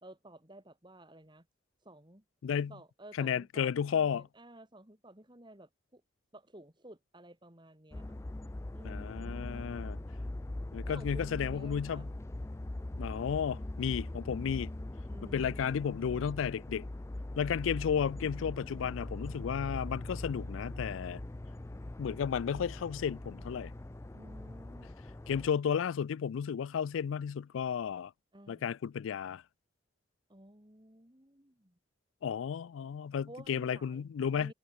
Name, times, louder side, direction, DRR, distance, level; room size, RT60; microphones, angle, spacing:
voice 1, 0.0-1.5 1.8-2.2 2.7-6.0 6.3-8.2 8.7-9.7 10.9-12.1 15.1-16.1 24.1-24.9 25.2-25.3 28.3-28.7 30.3-31.8 33.3-34.1 34.3-34.5, right 1 dB, 25° right, 2.9 m, -54 dB
voice 2, 3.2-4.2 8.8-10.0 10.7-12.1 13.0-14.7 15.3-16.9 17.4-21.2 22.0-23.7 25.3-28.1 28.5-29.4 32.2-34.5, left 7 dB, 85° left, 0.3 m, -33 dB
sound 1, 7.9-25.5, left 1 dB, 15° left, 0.3 m, -41 dB
head